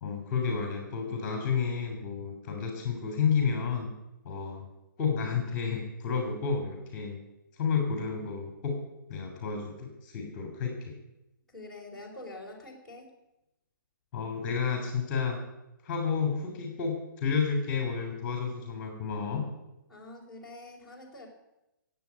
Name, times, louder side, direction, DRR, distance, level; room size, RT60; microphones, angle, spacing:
voice 1, 0.0-3.9 4.2-4.6 5.0-7.2 7.6-8.8 9.1-10.9 14.1-15.4 15.8-19.5, left 6 dB, 30° left, 3 dB, 3.3 m, -31 dB
voice 2, 11.5-13.1 19.9-21.3, left 2 dB, ahead, -8 dB, 4.4 m, -45 dB
15.5 x 8.4 x 9.6 m, 0.93 s
hypercardioid pair, 155°, 11 cm